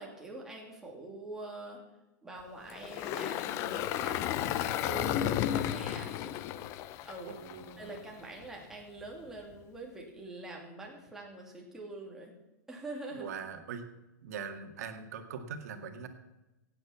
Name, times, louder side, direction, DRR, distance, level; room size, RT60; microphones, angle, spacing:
voice 1, 0.0-1.8 2.2-6.4 7.0-7.3 7.8-12.3 12.7-13.3, right 2 dB, 5° right, -2 dB, 2.7 m, -45 dB
Engine, 2.7-8.0, left 11 dB, 30° left, 0.5 m, -33 dB
voice 2, 7.3-7.9 13.1-13.8 14.2-16.1, right 6 dB, 65° right, 6 dB, 1.9 m, -42 dB
15.5 x 9.1 x 5.8 m, 1.0 s
supercardioid pair, 160°, 9 cm